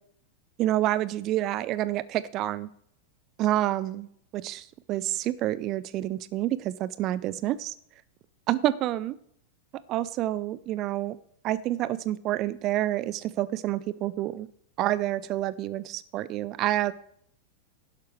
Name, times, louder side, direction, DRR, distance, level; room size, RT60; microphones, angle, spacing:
voice 1, 0.6-2.7 3.4-4.1 4.3-7.7 8.5-9.2 9.9-11.2 11.4-14.5 14.8-16.9, right 14 dB, 35° right, 18 dB, 0.4 m, -28 dB
12.0 x 11.0 x 4.6 m, 0.69 s
figure-of-eight pair, 90°, 0 cm